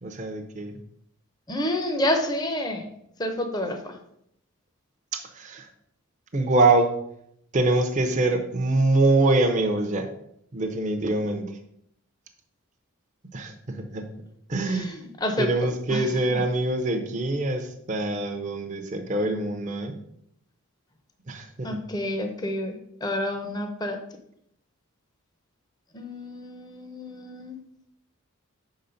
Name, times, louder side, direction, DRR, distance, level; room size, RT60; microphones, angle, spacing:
voice 1, 0.0-0.8 5.1-5.7 6.3-7.0 7.5-10.1 10.5-11.6 13.3-14.1 14.5-15.0 15.4-19.9 21.3-21.8, right 2 dB, 35° right, 3 dB, 0.6 m, -24 dB
voice 2, 1.5-2.9 3.2-4.0 14.6-16.4 21.6-22.8 23.0-24.0 25.9-27.6, left 1 dB, 20° left, 4 dB, 0.6 m, -29 dB
6.0 x 3.9 x 5.6 m, 0.73 s
head